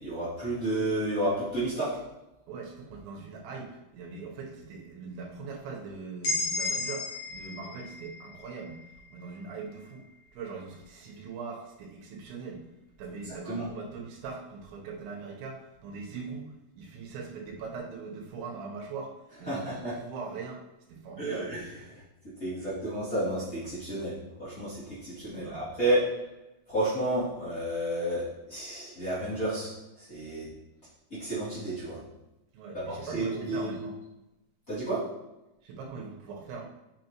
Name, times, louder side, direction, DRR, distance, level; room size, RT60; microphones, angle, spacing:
voice 1, 0.0-1.9 13.2-13.7 19.5-19.9 21.2-21.6 22.4-24.1 24.4-26.0 26.7-30.5 31.1-32.0 32.7-33.7 34.7-35.0, right 1 dB, 25° left, -13 dB, 2.4 m, -31 dB
voice 2, 2.5-8.8 9.1-10.0 10.3-12.7 13.0-19.2 19.4-20.6 20.9-21.6 25.2-25.7 32.5-33.9 35.6-36.6, right 4 dB, 85° right, 0 dB, 3.4 m, -41 dB
sound 1, 6.2-10.1, left 2 dB, 55° left, 3.8 m, -35 dB
7.8 x 6.1 x 3.0 m, 0.94 s
omnidirectional pair, 5.0 m